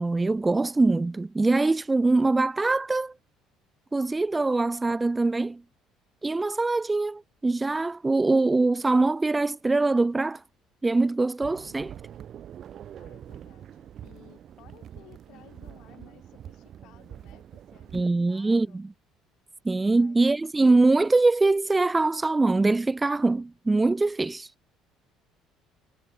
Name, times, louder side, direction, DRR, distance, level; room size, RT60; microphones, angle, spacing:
voice 1, 0.0-3.1 3.9-5.6 6.2-10.4 10.8-12.0 17.9-18.9 19.6-24.5, right 3 dB, 15° right, 0.4 m, -23 dB
sound 1, 11.4-18.0, right 10 dB, 50° right, 2.7 m, -45 dB
voice 2, 13.0-18.8 20.0-20.4, left 16 dB, 70° left, 7.5 m, -57 dB
cardioid pair, 105°, 0 cm